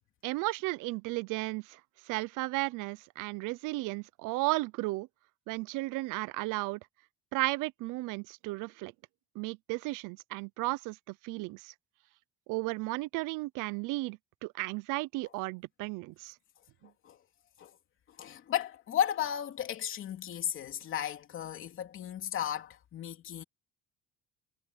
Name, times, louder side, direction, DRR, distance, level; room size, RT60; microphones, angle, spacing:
voice 1, 0.2-1.8 2.1-5.1 5.5-6.8 7.3-8.9 9.4-11.0 11.2-11.7 12.5-16.3, right 22 dB, 80° right, 0.6 m, -34 dB
voice 2, 18.2-23.4, left 10 dB, 40° left, 3.1 m, -34 dB
cardioid pair, 175°, 31 cm